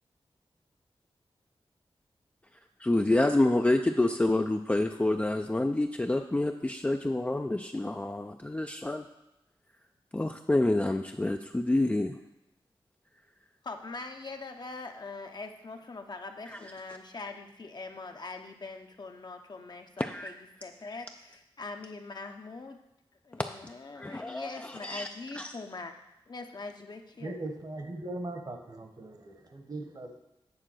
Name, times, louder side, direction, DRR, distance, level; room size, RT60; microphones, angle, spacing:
voice 1, 2.8-9.0 10.1-12.2 20.0-20.3 24.0-25.1 25.3-25.5, left 2 dB, 15° left, 4 dB, 0.4 m, -28 dB
voice 2, 13.6-22.8 23.2-26.0 26.3-27.3, left 3 dB, 50° left, 5 dB, 0.8 m, -42 dB
voice 3, 27.2-30.2, right 2 dB, 45° right, 5 dB, 1.1 m, -39 dB
8.8 x 3.7 x 6.2 m, 0.91 s
wide cardioid pair, 80°, 10 cm